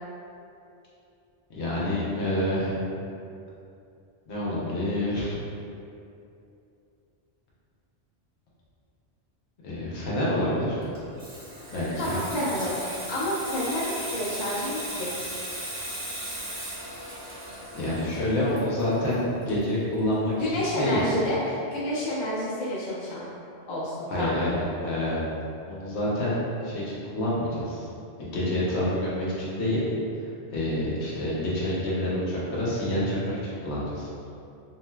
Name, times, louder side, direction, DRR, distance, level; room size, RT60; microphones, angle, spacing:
voice 1, 1.5-2.7 4.3-5.4 9.6-10.8 11.7-12.1 17.7-20.3 20.6-21.0 24.1-24.5 24.8-25.2 25.7-26.4 26.6-27.9 28.2-29.8 30.5-34.1, left 1 dB, 85° left, -7 dB, 1.0 m, -27 dB
Water tap faucet / Sink (filling or washing), 10.8-20.1 20.4-20.7, right 1 dB, 30° right, 0.8 m, -37 dB
voice 2, 12.0-15.1 20.4-23.2 23.7-24.3, left 1 dB, 35° left, -9 dB, 0.6 m, -29 dB
3.1 x 2.7 x 2.2 m, 2.6 s
omnidirectional pair, 1.1 m